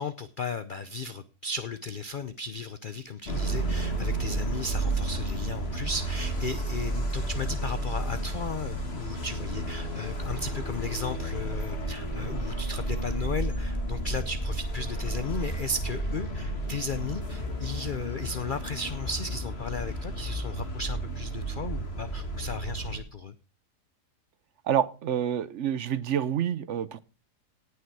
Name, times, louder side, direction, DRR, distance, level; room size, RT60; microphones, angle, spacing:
voice 1, 0.0-23.3, left 4 dB, 60° left, 12 dB, 0.5 m, -35 dB
sound 1, 3.2-23.0, right 1 dB, 40° left, 2.2 m, -32 dB
voice 2, 24.7-27.0, right 9 dB, 55° right, 15 dB, 0.9 m, -28 dB
18.0 x 6.6 x 4.7 m, 0.34 s
omnidirectional pair, 1.7 m